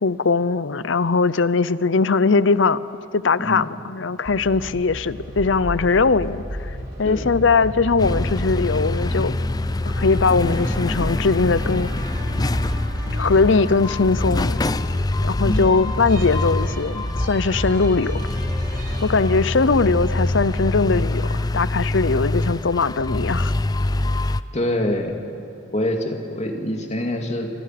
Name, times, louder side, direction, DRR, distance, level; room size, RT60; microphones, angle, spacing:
voice 1, 0.0-2.8 3.1-9.3 9.9-11.9 13.2-14.6 15.2-18.2 19.0-23.5, left 4 dB, 75° left, 17 dB, 0.7 m, -20 dB
voice 2, 3.4-3.7 7.0-7.3 15.4-15.7 24.5-25.1 25.7-27.5, left 1 dB, 35° left, 3 dB, 2.5 m, -25 dB
sound 1, 4.3-21.6, equal, 50° right, 6.2 m, -32 dB
sound 2, 8.0-24.4, left 2 dB, 20° left, 0.5 m, -25 dB
29.0 x 26.0 x 6.0 m, 2.8 s
head